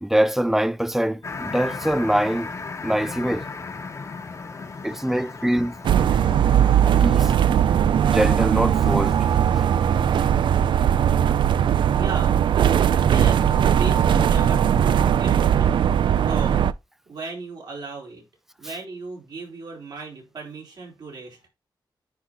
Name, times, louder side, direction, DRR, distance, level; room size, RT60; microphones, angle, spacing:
voice 1, 0.0-2.5 2.8-3.5 4.8-5.8 7.0-7.3 8.0-9.2 9.6-9.7 10.2-10.3, right 1 dB, 5° right, 0.3 m, -23 dB
sound 1, 1.2-9.3, left 4 dB, 40° left, 1.0 m, -37 dB
voice 2, 4.5-4.9 11.9-12.6 13.0-15.7 16.1-16.6 17.1-18.2 18.6-21.5, right 3 dB, 60° right, 3.9 m, -37 dB
sound 2, 5.8-16.7, right 9 dB, 85° right, 0.4 m, -19 dB
10.0 x 3.9 x 3.0 m
wide cardioid pair, 170°, 8 cm